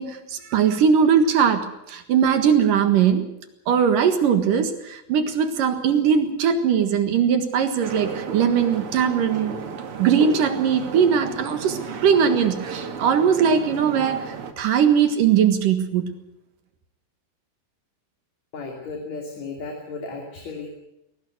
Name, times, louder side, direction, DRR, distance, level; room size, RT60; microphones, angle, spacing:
voice 1, 0.0-3.3 3.7-9.5 10.0-16.1, right 7 dB, 60° right, 8 dB, 3.0 m, -20 dB
sound 1, 7.8-14.5, right 5 dB, 45° right, 2.1 m, -33 dB
voice 2, 18.5-20.7, left 4 dB, 45° left, 1 dB, 3.8 m, -34 dB
21.0 x 18.0 x 8.1 m, 0.83 s
omnidirectional pair, 4.5 m